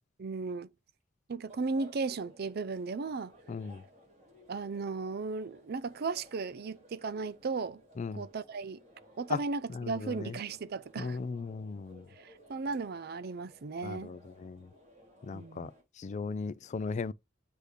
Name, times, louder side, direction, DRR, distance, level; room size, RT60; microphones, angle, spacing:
voice 1, 0.2-0.7 1.3-3.3 4.5-7.8 8.1-8.8 9.2-11.2 12.2-14.1 15.3-15.7, right 4 dB, 55° right, 0.5 m, -36 dB
sound 1, 1.5-15.8, equal, 35° right, 3.3 m, -59 dB
voice 2, 3.5-3.8 8.0-8.2 9.3-9.4 9.7-10.3 11.0-12.0 13.8-14.7 15.2-15.7 16.0-17.1, left 4 dB, 40° left, 0.3 m, -37 dB
8.2 x 2.7 x 4.9 m
head